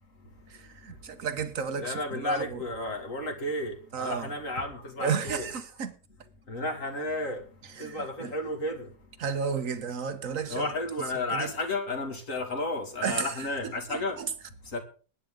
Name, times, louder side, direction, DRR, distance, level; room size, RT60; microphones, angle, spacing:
voice 1, 0.5-2.6 3.9-4.3 5.0-5.9 7.8-8.3 9.2-10.7 11.3-11.5 13.0-14.3, right 6 dB, 50° right, 1.3 m, -33 dB
voice 2, 1.8-5.5 6.5-7.4 7.8-8.9 10.5-14.2 14.7-14.8, left 2 dB, 45° left, 2.4 m, -32 dB
21.5 x 9.8 x 3.8 m
omnidirectional pair, 2.1 m